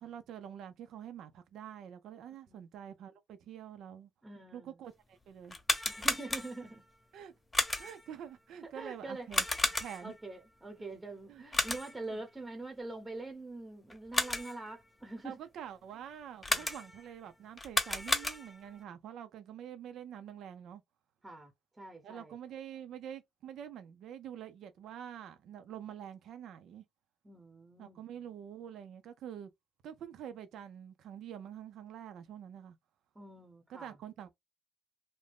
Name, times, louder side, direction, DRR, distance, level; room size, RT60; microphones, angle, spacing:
voice 1, 0.0-4.1 4.5-5.6 7.1-7.3 7.8-9.4 9.8-10.1 11.3-11.4 12.1-12.2 15.2-20.8 22.0-26.8 27.8-29.5 29.8-32.8 33.7-34.3, right 9 dB, 75° right, 0.6 m, -46 dB
voice 2, 4.2-4.8 5.9-6.8 8.7-9.4 10.0-15.4 16.5-16.7 21.2-21.5 21.8-22.4 27.2-28.0 33.1-34.0, right 2 dB, 15° right, 0.8 m, -44 dB
sound 1, 5.4-6.8 7.5-8.1 9.3-10.2 11.5-12.1 13.9-14.7 16.4-17.1 17.6-18.7, left 2 dB, 20° left, 0.8 m, -33 dB
2.6 x 2.2 x 3.4 m
cardioid pair, 90°, 0 cm